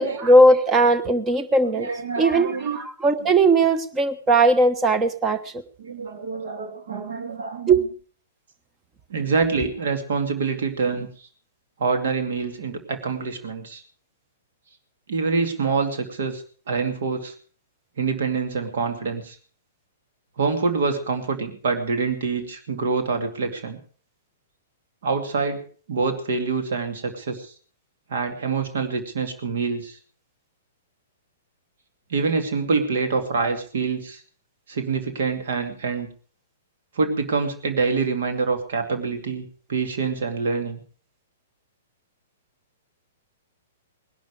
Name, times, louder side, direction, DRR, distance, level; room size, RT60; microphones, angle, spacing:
voice 1, 0.0-1.9 2.2-5.4 7.7-7.8, right 2 dB, 20° right, 12 dB, 1.1 m, -18 dB
voice 2, 1.7-2.8 5.8-7.7 9.1-11.1 11.8-13.8 15.1-17.3 18.0-19.4 20.4-23.8 25.0-27.5 28.1-30.0 32.1-34.2 34.7-36.1 37.0-40.8, right 4 dB, 55° right, 7 dB, 2.5 m, -26 dB
19.5 x 11.5 x 4.9 m, 0.42 s
figure-of-eight pair, 110°, 0 cm